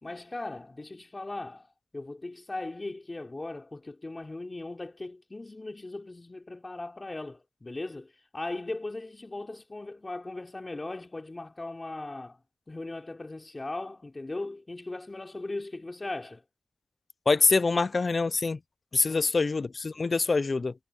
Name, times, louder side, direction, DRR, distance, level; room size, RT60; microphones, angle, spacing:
voice 1, 0.0-12.4 12.7-16.4 19.1-19.3, left 2 dB, 35° left, 3.3 m, -38 dB
voice 2, 17.3-18.6 18.9-20.7, left 4 dB, 55° left, 0.5 m, -25 dB
wide cardioid pair, 60°, 0 cm